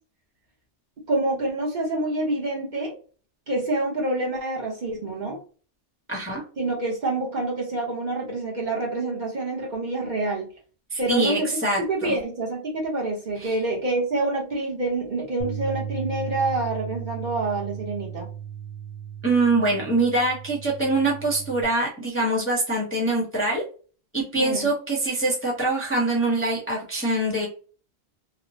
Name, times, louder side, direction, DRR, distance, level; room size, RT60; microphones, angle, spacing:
voice 1, 1.1-2.9 3.5-5.4 6.6-10.5 11.0-11.5 11.8-18.3 24.3-24.7, right 2 dB, 45° right, -2 dB, 0.9 m, -27 dB
voice 2, 6.1-6.4 10.9-12.2 13.4-13.5 19.2-23.6 24.1-27.5, right 2 dB, 15° left, -3 dB, 0.6 m, -24 dB
Bass guitar, 15.4-21.7, right 8 dB, 90° right, 1.1 m, -36 dB
3.0 x 2.0 x 2.6 m, 0.39 s
omnidirectional pair, 1.2 m